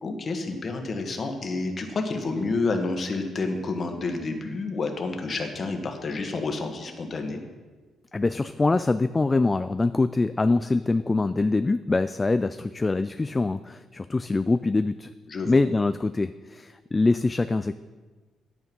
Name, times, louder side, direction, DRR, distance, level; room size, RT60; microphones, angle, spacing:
voice 1, 0.0-7.4 15.3-15.5, left 3 dB, 40° left, 4 dB, 1.6 m, -29 dB
voice 2, 8.1-15.1 15.5-17.7, left 3 dB, 20° left, 12 dB, 0.3 m, -24 dB
10.5 x 8.7 x 5.4 m, 1.3 s
cardioid pair, 90°, 0 cm